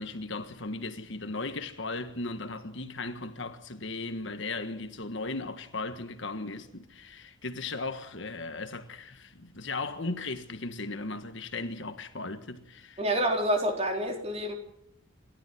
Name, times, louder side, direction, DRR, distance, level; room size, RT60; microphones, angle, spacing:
voice 1, 0.0-13.0, left 3 dB, 60° left, 1.6 m, -37 dB
voice 2, 13.0-14.5, right 1 dB, 30° right, 3.9 m, -27 dB
28.5 x 13.0 x 7.8 m
head